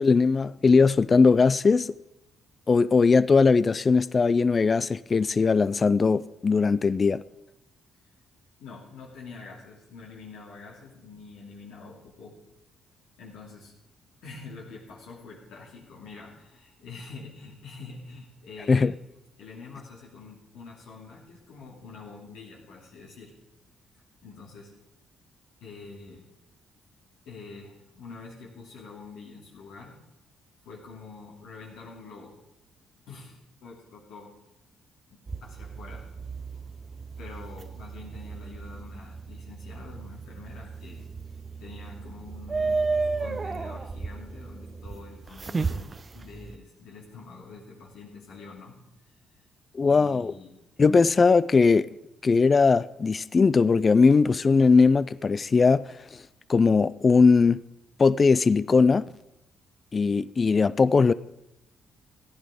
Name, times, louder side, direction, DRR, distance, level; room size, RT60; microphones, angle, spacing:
voice 1, 0.0-1.9 2.7-7.2 18.7-18.9 49.7-50.3 50.8-51.9 52.2-55.9 56.5-57.6 58.0-59.0 59.9-61.1, left 4 dB, 35° left, 0.4 m, -20 dB
voice 2, 8.6-12.4 13.2-13.7 14.2-19.0 19.4-23.3 24.2-24.7 25.6-26.2 27.2-30.0 30.6-32.4 33.1-34.3 35.1-36.0 37.2-41.1 41.6-42.8 43.2-49.5 49.8-50.5, left 4 dB, 85° left, 2.7 m, -46 dB
sound 1, 35.3-46.6, right 4 dB, 30° right, 0.5 m, -34 dB
14.5 x 10.5 x 5.0 m
cardioid pair, 90°, 0 cm